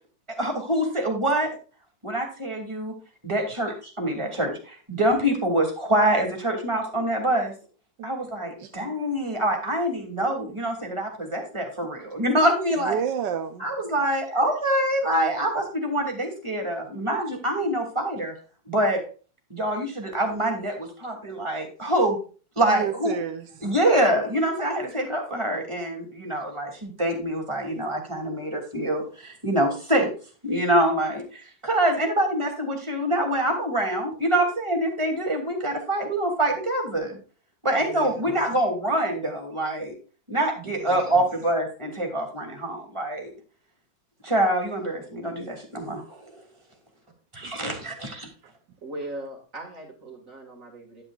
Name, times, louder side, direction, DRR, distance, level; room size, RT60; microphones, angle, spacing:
voice 1, 0.4-1.5 2.0-2.9 3.2-7.5 8.0-13.0 13.6-18.3 18.7-19.0 19.5-22.2 22.6-23.1 23.6-30.1 30.4-37.2 37.6-39.9 40.3-43.3 44.2-46.4 47.3-48.3, right 1 dB, 15° right, 2 dB, 2.9 m, -25 dB
voice 2, 12.8-13.7 22.6-23.7 37.9-38.2 40.7-41.2 47.4-47.8, right 8 dB, 85° right, 6 dB, 1.5 m, -32 dB
voice 3, 48.8-51.0, right 1 dB, 50° right, 1 dB, 2.6 m, -38 dB
10.5 x 9.9 x 2.5 m, 0.36 s
omnidirectional pair, 1.9 m